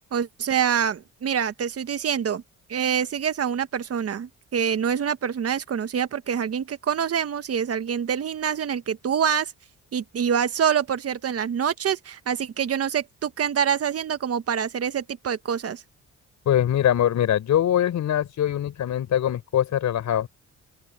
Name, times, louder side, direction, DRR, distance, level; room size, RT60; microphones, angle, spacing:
voice 1, 0.1-2.4 2.7-9.5 9.9-15.8, right 8 dB, 50° right, 1.4 m, -26 dB
voice 2, 16.5-20.3, left 10 dB, 70° left, 5.3 m, -22 dB
open air
cardioid pair, 90°, 30 cm